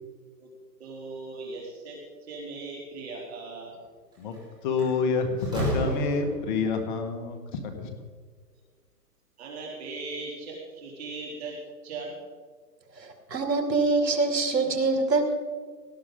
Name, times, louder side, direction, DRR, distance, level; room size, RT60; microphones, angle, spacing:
voice 1, 0.8-3.8 9.4-12.2, right 3 dB, 40° right, -2 dB, 3.3 m, -39 dB
Slam, 4.1-4.4 4.8-6.7, right 1 dB, 10° right, 3.8 m, -31 dB
voice 2, 4.6-7.4 7.8-7.9, left 4 dB, 30° left, 6 dB, 1.7 m, -27 dB
voice 3, 13.0-15.4, right 3 dB, 80° right, 5 dB, 2.5 m, -25 dB
18.5 x 12.0 x 4.0 m, 1.5 s
hypercardioid pair, 150°, 49 cm